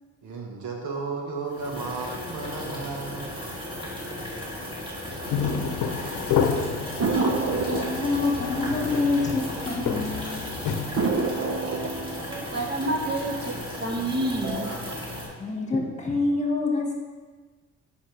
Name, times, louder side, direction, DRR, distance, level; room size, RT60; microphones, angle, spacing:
voice 1, 0.2-3.4, right 4 dB, 75° right, 1 dB, 1.4 m, -34 dB
sound 1, 1.5-15.3, left 1 dB, 15° right, 2.6 m, -35 dB
voice 2, 5.0-5.7 7.3-10.4 15.4-16.9, left 3 dB, 25° left, 0 dB, 1.6 m, -27 dB
sound 2, 5.2-11.1, left 6 dB, 80° left, 0.8 m, -30 dB
sound 3, 7.0-10.1 10.3-10.4 11.0-13.9 14.3-14.9, right 3 dB, 55° right, 0.9 m, -30 dB
voice 3, 12.3-13.5 13.8-14.8, right 1 dB, 35° right, 1 dB, 1.3 m, -28 dB
9.9 x 5.4 x 3.3 m, 1.4 s
cardioid pair, 90°, 30 cm